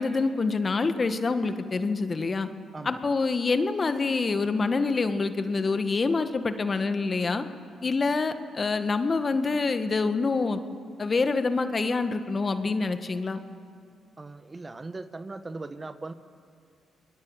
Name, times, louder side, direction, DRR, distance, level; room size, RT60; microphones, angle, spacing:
voice 1, 0.0-2.5 2.8-7.4 7.8-10.6 11.0-13.4, left 4 dB, 40° left, 9 dB, 1.7 m, -26 dB
voice 2, 2.7-3.1 14.2-16.1, right 3 dB, 30° right, 11 dB, 1.3 m, -39 dB
28.0 x 21.5 x 7.5 m, 2.3 s
hypercardioid pair, 50°, 0 cm